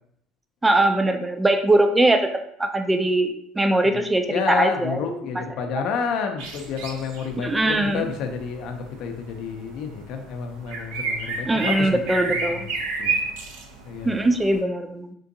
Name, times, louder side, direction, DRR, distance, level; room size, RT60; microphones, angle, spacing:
voice 1, 0.6-2.3 2.6-5.2 7.4-8.1 11.5-12.7 14.0-15.1, right 1 dB, 10° right, 7 dB, 0.3 m, -21 dB
voice 2, 3.9-12.7 13.0-13.2 13.8-14.3, left 6 dB, 65° left, 5 dB, 0.5 m, -30 dB
sound 1, 6.4-14.6, right 4 dB, 90° right, 0.5 m, -31 dB
3.7 x 2.5 x 2.6 m, 0.72 s
cardioid pair, 125°, 0 cm